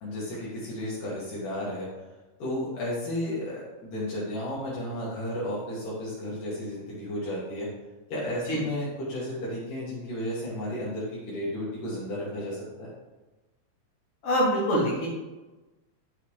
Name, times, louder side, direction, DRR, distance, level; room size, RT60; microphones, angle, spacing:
voice 1, 0.0-1.9 2.4-7.7 8.1-12.9, left 1 dB, 70° left, -7 dB, 3.4 m, -33 dB
voice 2, 14.2-15.1, equal, 45° left, -6 dB, 3.4 m, -24 dB
10.0 x 6.5 x 3.2 m, 1.1 s
omnidirectional pair, 3.9 m